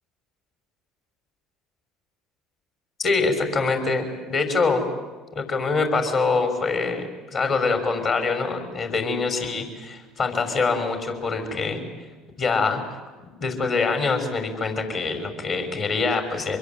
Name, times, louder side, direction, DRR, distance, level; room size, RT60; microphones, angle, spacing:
voice 1, 3.0-4.8 5.3-11.8 12.4-13.0 13.4-16.6, left 4 dB, 45° left, 6 dB, 6.2 m, -24 dB
25.5 x 22.0 x 9.5 m, 1.3 s
hypercardioid pair, 70°, 0 cm